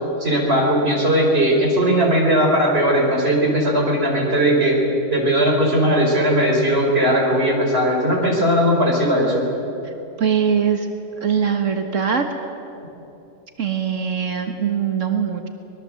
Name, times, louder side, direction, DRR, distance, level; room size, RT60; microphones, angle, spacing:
voice 1, 0.2-4.8 5.1-9.5, equal, 50° right, -1 dB, 5.0 m, -18 dB
voice 2, 10.2-10.9 11.2-12.3 13.6-15.5, right 7 dB, 70° right, 5 dB, 1.7 m, -21 dB
25.0 x 21.0 x 7.8 m, 2.9 s
omnidirectional pair, 1.3 m